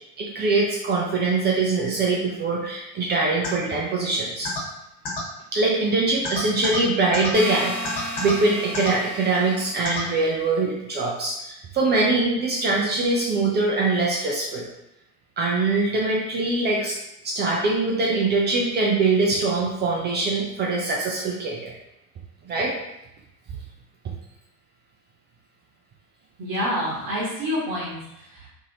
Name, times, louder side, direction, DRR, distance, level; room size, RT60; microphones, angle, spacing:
voice 1, 0.2-4.5 5.5-14.7 15.4-16.9 17.2-21.7 22.4-22.8, right 3 dB, 25° right, -2 dB, 0.4 m, -23 dB
sound 1, 3.4-3.5 4.4-4.6 5.0-5.2 6.2-6.8 7.1-7.3 7.8-8.3 8.7-8.9 9.8-10.0, left 3 dB, 50° left, 1.3 m, -29 dB
sound 2, 7.3-10.2, equal, 20° left, 0.9 m, -34 dB
voice 2, 26.4-28.5, equal, 45° right, -5 dB, 1.0 m, -28 dB
2.7 x 2.6 x 2.7 m, 0.85 s
figure-of-eight pair, 65°, 47 cm